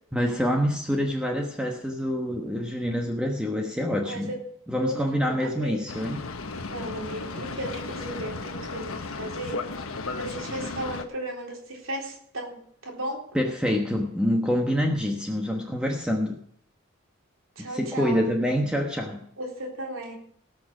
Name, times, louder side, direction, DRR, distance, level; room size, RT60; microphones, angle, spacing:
voice 1, 0.1-4.3 4.7-6.2 13.3-16.4 17.6-19.2, equal, 5° right, 1 dB, 1.1 m, -26 dB
voice 2, 4.0-4.4 4.8-5.8 6.6-9.6 10.2-12.6 12.8-13.2 17.6-18.2 19.4-20.1, right 1 dB, 75° right, 0 dB, 3.7 m, -35 dB
Boat Water vehicle, 5.9-11.0, left 3 dB, 85° left, 1.2 m, -35 dB
18.5 x 6.6 x 6.2 m, 0.65 s
head